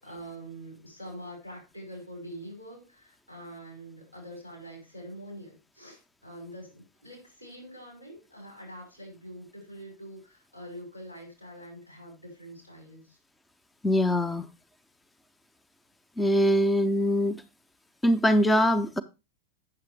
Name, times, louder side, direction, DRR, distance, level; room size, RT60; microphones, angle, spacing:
voice 1, 0.0-13.2, right 1 dB, 90° left, 5.9 m, -45 dB
voice 2, 13.8-14.5 16.2-17.4 18.0-19.0, equal, 10° left, 0.5 m, -23 dB
8.6 x 7.3 x 3.2 m
figure-of-eight pair, 90°, 0 cm